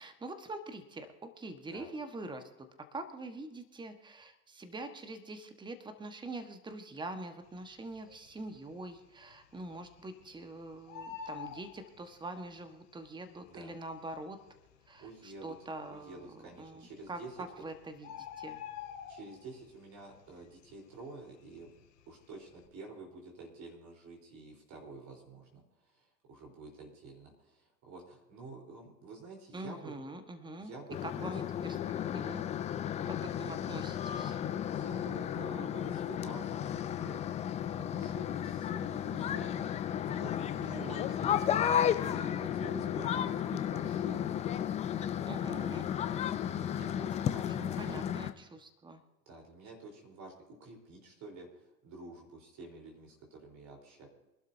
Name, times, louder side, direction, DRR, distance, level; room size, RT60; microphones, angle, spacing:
voice 1, 0.0-14.4 14.9-18.6 29.5-30.7 31.0-31.8 32.1-32.4 32.8-34.4 40.6-41.0 43.0-43.3 45.3-45.9 47.6-49.0, right 2 dB, 10° right, 8 dB, 1.4 m, -44 dB
Bird, 8.0-8.6 8.9-9.0 9.2-10.4 10.7-12.5 13.4-13.5 14.1-14.2 14.4-14.5 15.2-15.6 16.6-16.7 17.0-17.1 17.4-19.7 20.0-20.3 20.6-22.0 22.3-22.6, left 8 dB, 50° left, 2.5 m, -46 dB
voice 2, 15.0-15.6 15.9-17.3 19.1-25.6 25.9-30.0 30.6-31.3 34.7-37.2 37.9-39.7 40.0-41.6 42.0-44.4 46.5-48.0 49.3-50.3 50.6-54.1, right 3 dB, 35° right, 0 dB, 4.1 m, -49 dB
sound 1, 30.9-48.3, left 9 dB, 15° left, 0.5 m, -33 dB
25.0 x 12.0 x 2.8 m, 1.0 s
hypercardioid pair, 100°, 48 cm